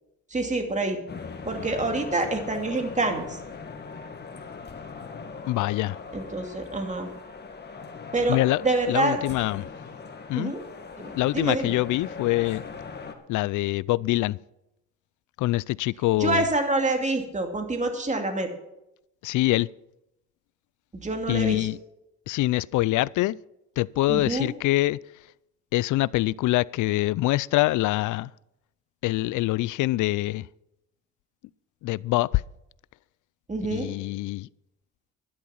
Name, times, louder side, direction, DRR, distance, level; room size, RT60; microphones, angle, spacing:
voice 1, 0.3-1.0 1.5-3.4 6.1-7.1 8.1-8.4 8.6-9.2 10.3-10.6 11.0-11.7 16.2-18.5 20.9-21.7 24.1-24.5 33.5-33.9, right 2 dB, 25° right, 2.6 m, -27 dB
sound 1, 1.1-13.1, left 5 dB, 35° left, 1.9 m, -40 dB
voice 2, 5.5-6.0 8.3-8.6 8.9-9.7 10.3-10.5 11.1-12.6 13.3-14.4 15.4-16.4 19.2-19.7 21.3-21.8 22.3-23.4 23.8-25.0 25.7-28.3 29.0-30.5 31.8-32.3 33.6-34.5, left 17 dB, 80° left, 0.5 m, -24 dB
12.0 x 11.5 x 5.7 m
cardioid pair, 90°, 30 cm